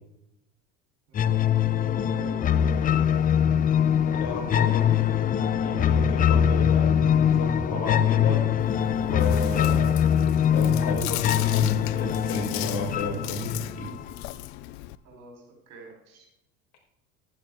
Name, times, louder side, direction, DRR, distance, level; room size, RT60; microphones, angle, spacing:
sound 1, 1.2-14.1, left 9 dB, 25° left, 0.5 m, -23 dB
voice 1, 1.6-3.0 15.0-16.3, right 2 dB, 55° right, 1 dB, 4.6 m, -47 dB
voice 2, 4.1-4.9 5.6-8.4 9.0-9.9 10.5-13.9, left 3 dB, 55° left, -1 dB, 5.0 m, -31 dB
Chewing mastication, 8.6-14.9, left 16 dB, 80° left, 0.6 m, -37 dB
11.5 x 10.0 x 3.8 m, 0.82 s
supercardioid pair, 105°, 31 cm